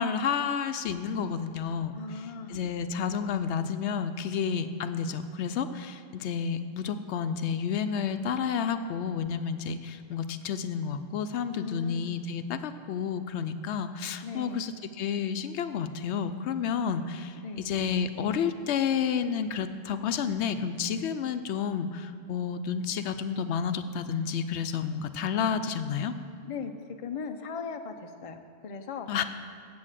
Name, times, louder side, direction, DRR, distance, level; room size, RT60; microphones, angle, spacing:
voice 1, 0.0-1.9 2.5-26.1 29.1-29.2, left 7 dB, 80° left, 10 dB, 0.8 m, -30 dB
voice 2, 1.9-2.7 11.6-12.3 14.2-14.7 17.4-17.7 26.4-26.7 27.0-29.1, left 5 dB, 35° left, 6 dB, 0.6 m, -38 dB
8.7 x 7.6 x 7.4 m, 2.6 s
omnidirectional pair, 1.1 m